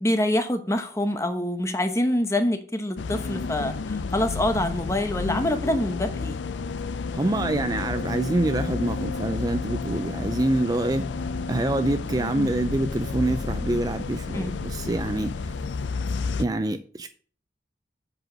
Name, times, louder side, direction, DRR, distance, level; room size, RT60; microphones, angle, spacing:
voice 1, 0.0-6.4 14.3-14.5, left 1 dB, 15° left, 7 dB, 0.9 m, -25 dB
sound 1, 3.0-16.5, left 4 dB, 90° left, 0.5 m, -31 dB
voice 2, 7.1-11.1 11.5-15.6 16.4-17.1, right 2 dB, 20° right, 9 dB, 0.4 m, -26 dB
7.8 x 4.8 x 6.1 m, 0.43 s
head